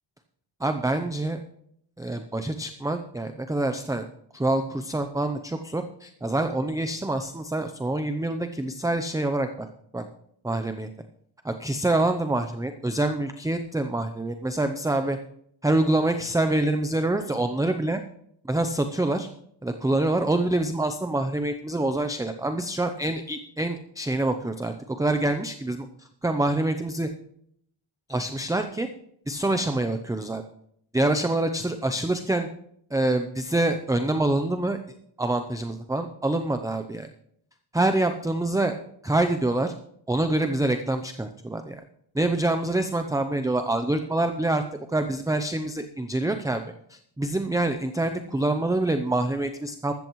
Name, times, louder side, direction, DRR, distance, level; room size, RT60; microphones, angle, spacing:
voice 1, 0.6-1.4 2.0-4.1 4.3-9.7 9.9-10.0 10.4-10.9 11.4-15.2 15.6-18.0 18.4-19.3 19.6-27.1 28.1-28.9 29.3-30.4 30.9-32.5 32.9-34.8 35.2-37.1 37.7-38.8 39.0-39.7 40.1-41.8 42.1-44.6 44.9-46.6 46.9-49.9, right 2 dB, 5° right, 7 dB, 0.6 m, -26 dB
14.0 x 13.5 x 3.1 m, 0.67 s
wide cardioid pair, 165°, 47 cm